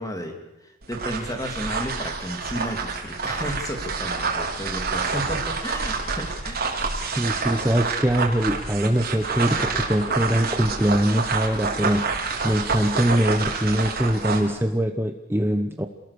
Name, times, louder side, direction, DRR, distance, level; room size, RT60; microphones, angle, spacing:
voice 1, 0.0-6.7, equal, 15° left, 4 dB, 3.1 m, -33 dB
sound 1, 0.8-14.5, right 4 dB, 50° right, 4.2 m, -28 dB
voice 2, 7.0-15.9, right 1 dB, 10° right, 6 dB, 1.0 m, -23 dB
28.0 x 19.0 x 6.9 m, 0.93 s
head